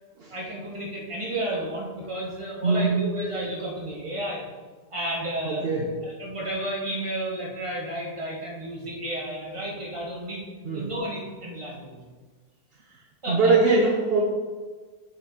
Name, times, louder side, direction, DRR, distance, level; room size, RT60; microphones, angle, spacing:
voice 1, 0.3-4.4 4.9-5.6 6.0-10.4 10.7-12.0 13.2-13.6, right 1 dB, 20° right, -4 dB, 1.5 m, -32 dB
voice 2, 2.6-3.0 5.4-5.9 10.6-10.9 13.3-14.2, right 3 dB, 50° right, -1 dB, 0.7 m, -21 dB
7.4 x 5.1 x 4.1 m, 1.4 s
omnidirectional pair, 1.7 m